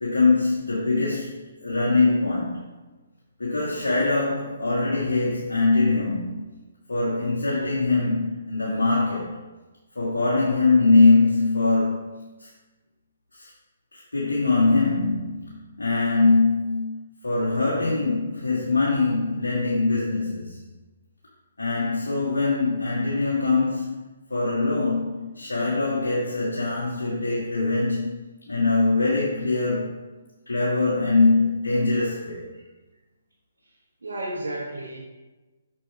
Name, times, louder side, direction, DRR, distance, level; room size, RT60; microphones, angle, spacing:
voice 1, 0.0-1.3 1.6-2.6 3.4-6.4 6.9-9.4 9.9-12.5 13.3-13.5 13.9-20.6 21.6-24.0 24.3-28.2 28.5-29.9 30.5-32.4, left 3 dB, 85° left, -5 dB, 1.6 m, -22 dB
voice 2, 34.0-35.0, right 1 dB, 85° right, -5 dB, 1.5 m, -32 dB
6.2 x 6.1 x 3.4 m, 1.2 s
hypercardioid pair, 145°, 0 cm